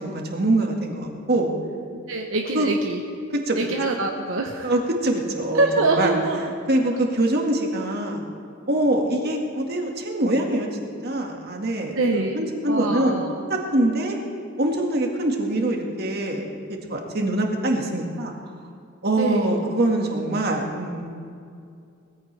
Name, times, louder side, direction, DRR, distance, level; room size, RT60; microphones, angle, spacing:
voice 1, 0.0-1.5 2.5-2.7 3.3-3.6 4.6-6.1 6.7-8.2 8.7-10.7 11.0-13.2 13.5-14.2 14.6-18.3 19.0-21.1, right 1 dB, 55° right, 1 dB, 1.9 m, -24 dB
voice 2, 2.1-3.0 3.6-4.8 5.5-6.4 12.0-12.4 12.7-13.3 19.2-19.6, right 2 dB, 80° right, 1 dB, 1.0 m, -24 dB
20.0 x 14.5 x 3.4 m, 2.4 s
head